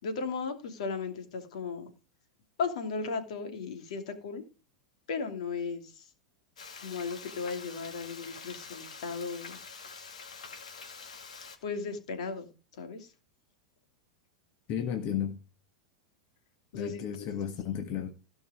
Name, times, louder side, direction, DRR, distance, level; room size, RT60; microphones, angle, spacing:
voice 1, 0.0-1.9 2.6-4.4 5.1-6.1 6.8-9.6 11.6-12.5 12.8-13.1 16.7-17.3 17.6-17.7, left 5 dB, 70° left, 2.7 m, -36 dB
Frying (food), 6.6-11.6, left 5 dB, 90° left, 2.2 m, -46 dB
voice 2, 14.7-15.4 16.7-18.1, left 9 dB, 45° left, 1.6 m, -33 dB
16.5 x 5.5 x 5.0 m
hypercardioid pair, 110°, 4 cm